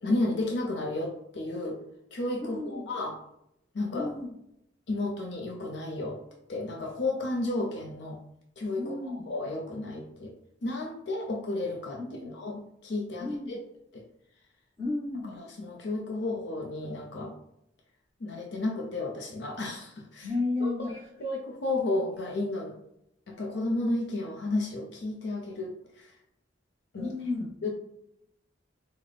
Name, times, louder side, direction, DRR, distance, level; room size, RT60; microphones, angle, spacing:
voice 1, 0.0-1.8 2.1-3.2 3.7-4.1 4.9-6.2 6.5-8.2 8.6-10.3 10.6-13.6 13.9-14.0 15.4-17.3 18.2-20.3 20.6-22.7 23.3-25.7 26.0-26.1 26.9-27.1 27.6-27.7, left 2 dB, 65° left, 0 dB, 0.5 m, -32 dB
voice 2, 2.4-2.8 3.9-4.3 8.8-9.3 12.0-12.3 13.2-13.6 14.8-15.4 20.2-21.0 27.0-27.5, left 2 dB, 10° right, -9 dB, 1.0 m, -33 dB
3.8 x 2.1 x 3.3 m, 0.78 s
head